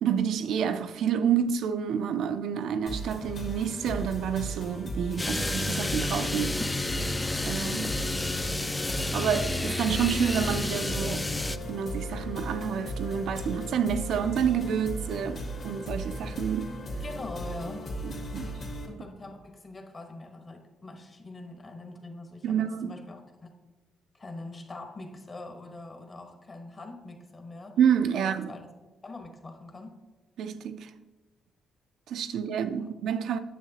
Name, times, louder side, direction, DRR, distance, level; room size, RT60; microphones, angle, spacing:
voice 1, 0.0-6.6 7.4-8.0 9.1-11.3 11.7-16.7 18.0-18.5 22.4-23.0 27.8-28.5 30.4-30.9 32.1-33.4, right 8 dB, 75° right, 0.5 m, -28 dB
sound 1, 2.9-18.9, equal, 55° left, 2.0 m, -37 dB
sound 2, 5.2-11.6, left 2 dB, 15° left, 0.4 m, -30 dB
voice 2, 17.0-18.2 18.9-23.5 24.1-27.8 28.1-28.7 29.0-29.9 32.8-32.9, left 2 dB, 30° left, 1.2 m, -43 dB
9.2 x 7.4 x 2.8 m
cardioid pair, 90°, 0 cm